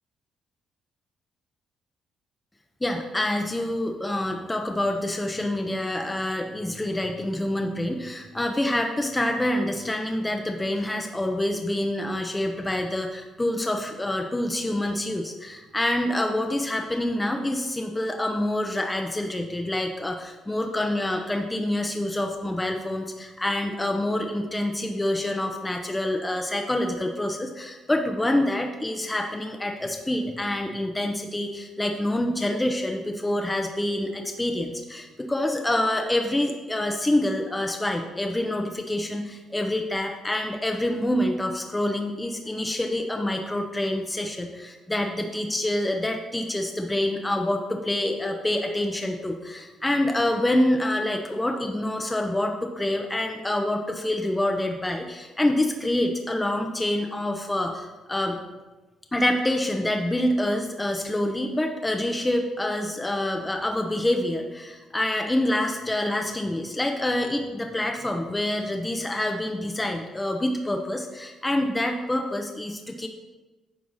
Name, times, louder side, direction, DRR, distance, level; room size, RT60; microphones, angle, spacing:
voice 1, 2.8-58.4 59.1-73.1, left 1 dB, 15° left, 3 dB, 0.8 m, -27 dB
9.6 x 5.7 x 4.1 m, 1.2 s
cardioid pair, 90°, 0 cm